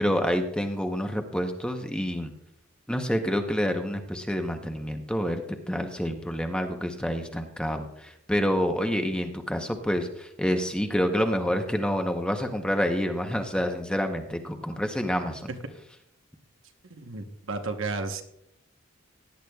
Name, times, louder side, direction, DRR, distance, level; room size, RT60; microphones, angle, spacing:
voice 1, 0.0-2.3 2.9-5.4 5.7-15.5, equal, 5° left, 5 dB, 0.8 m, -28 dB
voice 2, 16.9-18.2, right 3 dB, 70° right, 6 dB, 1.0 m, -32 dB
17.5 x 10.0 x 2.3 m, 0.76 s
head